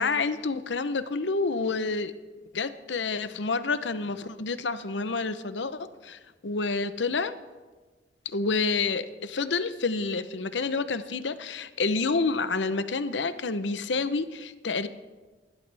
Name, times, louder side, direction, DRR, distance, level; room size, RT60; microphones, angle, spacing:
voice 1, 0.0-2.1 2.5-7.3 8.2-14.9, left 4 dB, 75° left, 12 dB, 0.8 m, -29 dB
28.5 x 12.0 x 3.5 m, 1.3 s
head